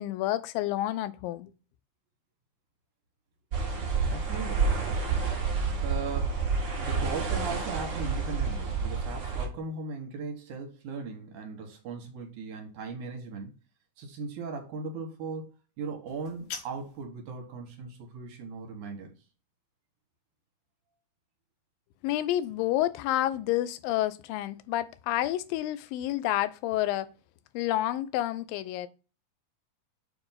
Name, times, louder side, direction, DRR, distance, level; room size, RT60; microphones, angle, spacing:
voice 1, 0.0-1.5 22.0-27.1 27.5-28.9, left 14 dB, 90° left, 2.3 m, -29 dB
sound 1, 3.5-9.5, right 5 dB, 50° right, 1.6 m, -29 dB
voice 2, 4.1-6.5 6.7-13.5 14.0-15.5 15.8-19.1, right 4 dB, 70° right, 2.4 m, -38 dB
sound 2, 16.1-17.1, left 6 dB, 70° left, 1.9 m, -42 dB
6.9 x 2.6 x 5.5 m
omnidirectional pair, 4.0 m